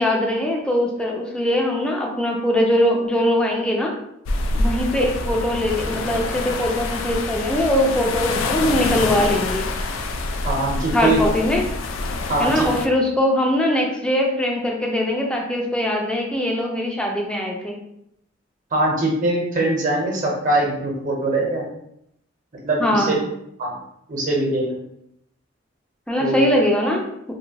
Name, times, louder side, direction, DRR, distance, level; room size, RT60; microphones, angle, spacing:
voice 1, 0.0-3.9 4.5-9.7 10.9-11.6 12.4-17.8 22.8-23.2 26.1-27.1, left 1 dB, 5° left, 0 dB, 0.4 m, -21 dB
sound 1, 4.3-12.9, left 2 dB, 85° left, 0.3 m, -26 dB
voice 2, 10.4-11.2 12.3-12.7 18.7-21.6 22.6-23.2 23.6-23.8 24.1-24.7 26.2-26.4, right 2 dB, 40° right, -2 dB, 0.7 m, -22 dB
2.7 x 2.1 x 2.7 m, 0.77 s
head